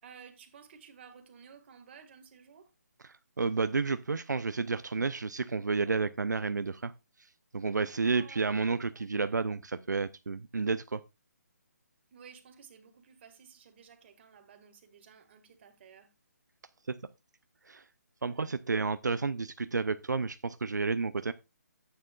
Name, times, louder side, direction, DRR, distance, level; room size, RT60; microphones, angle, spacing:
voice 1, 0.0-2.7 8.0-8.7 8.9-9.0 12.1-16.1 18.2-18.5, right 7 dB, 40° right, 1.9 m, -54 dB
voice 2, 3.4-6.9 7.5-11.0 16.9-17.0 17.7-17.8 18.2-21.3, right 4 dB, 85° right, 0.6 m, -31 dB
12.5 x 9.0 x 2.4 m
figure-of-eight pair, 150°, 9 cm